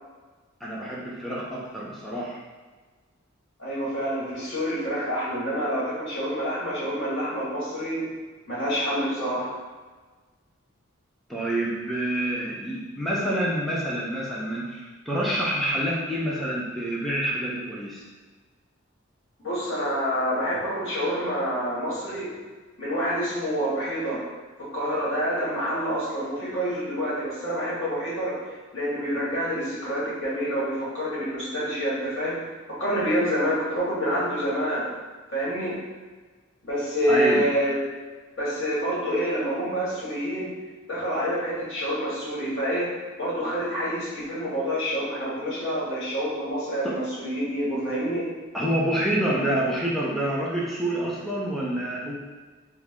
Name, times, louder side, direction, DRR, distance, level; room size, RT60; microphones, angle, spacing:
voice 1, 0.6-2.4 11.3-18.0 37.1-37.4 46.8-47.0 48.5-52.2, right 1 dB, ahead, -6 dB, 0.5 m, -27 dB
voice 2, 3.6-8.1 8.5-9.5 19.4-22.3 22.8-24.3 24.6-28.4 28.7-32.4 32.7-34.9 35.3-35.8 36.6-37.8 38.4-40.5 40.9-42.9 43.2-48.3, equal, 60° left, -8 dB, 1.5 m, -27 dB
3.5 x 2.0 x 3.6 m, 1.4 s
head